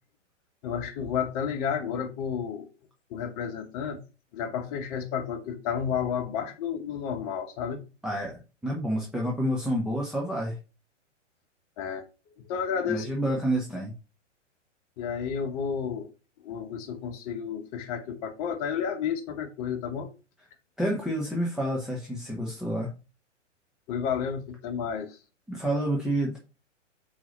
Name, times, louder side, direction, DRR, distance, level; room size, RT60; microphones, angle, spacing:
voice 1, 0.6-2.7 3.1-4.0 4.3-7.8 11.8-12.0 12.3-13.1 15.0-16.1 16.4-20.1 23.9-25.2, left 7 dB, 30° left, 1.0 m, -31 dB
voice 2, 8.0-10.6 12.9-13.9 20.8-22.9 25.5-26.4, right 1 dB, ahead, 0.6 m, -29 dB
4.5 x 4.1 x 5.2 m
figure-of-eight pair, 115°, 37 cm